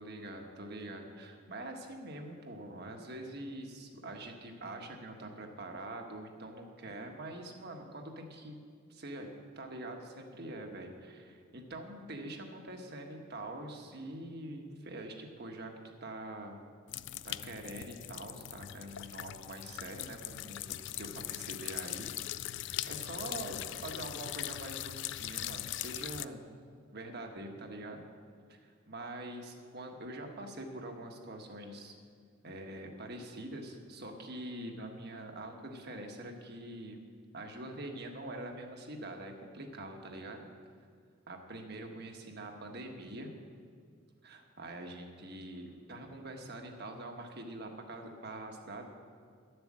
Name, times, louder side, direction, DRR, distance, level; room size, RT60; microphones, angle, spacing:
voice 1, 0.0-8.6 8.9-15.7 16.0-16.6 17.2-22.1 22.9-26.4 26.9-28.1 28.5-31.9 32.4-37.0 37.3-40.5 41.3-43.3 44.2-48.9, right 1 dB, 50° right, 3 dB, 1.4 m, -44 dB
sound 1, 16.9-26.2, left 13 dB, 60° left, 0.3 m, -40 dB
11.5 x 7.9 x 7.4 m, 2.1 s
head